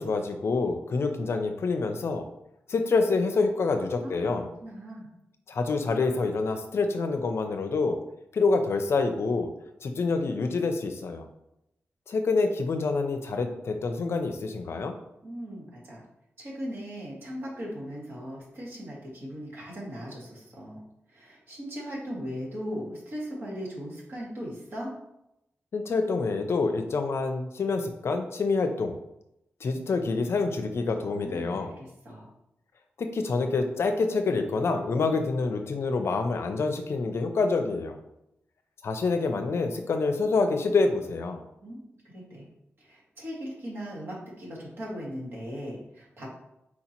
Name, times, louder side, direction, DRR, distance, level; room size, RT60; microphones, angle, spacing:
voice 1, 0.0-2.2 2.7-4.4 5.5-8.0 8.3-9.5 9.8-11.3 12.1-14.9 25.7-29.0 29.6-31.7 33.0-38.0 38.8-41.4, left 3 dB, 70° left, 6 dB, 0.5 m, -27 dB
voice 2, 4.0-5.1 15.2-16.0 16.4-20.8 21.1-24.9 31.0-32.3 41.6-42.5 42.8-46.3, equal, 55° right, -4 dB, 1.7 m, -38 dB
4.3 x 2.9 x 4.3 m, 0.84 s
wide cardioid pair, 100°, 5 cm